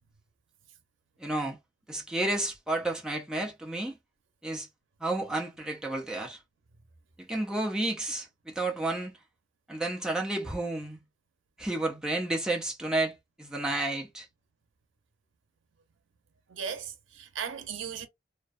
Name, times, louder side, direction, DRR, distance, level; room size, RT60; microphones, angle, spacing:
voice 1, 1.2-1.6 1.9-4.0 4.4-4.7 5.0-6.4 7.2-9.2 9.7-11.0 11.6-14.3, right 2 dB, 5° right, 0.4 m, -31 dB
voice 2, 16.5-18.1, right 7 dB, 85° right, 0.6 m, -37 dB
2.4 x 2.1 x 2.4 m
head